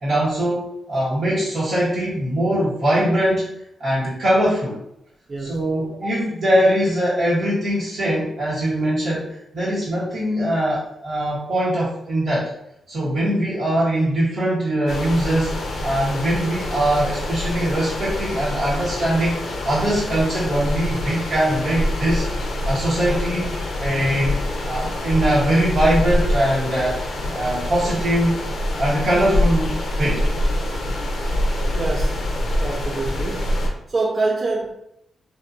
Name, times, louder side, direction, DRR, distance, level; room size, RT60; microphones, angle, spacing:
voice 1, 0.0-3.5 3.8-4.8 5.4-12.5 12.9-15.5 15.8-22.3 22.6-23.5 23.8-27.0 27.3-28.3 28.8-30.2, right 1 dB, 75° right, -10 dB, 0.8 m, -21 dB
voice 2, 5.3-5.6 6.0-6.1 31.7-32.1 32.6-33.5 33.9-34.7, right 3 dB, 50° right, -2 dB, 0.4 m, -25 dB
sound 1, 14.9-33.7, left 1 dB, 75° left, 0.5 m, -25 dB
2.9 x 2.1 x 2.4 m, 0.78 s
supercardioid pair, 50°, 0 cm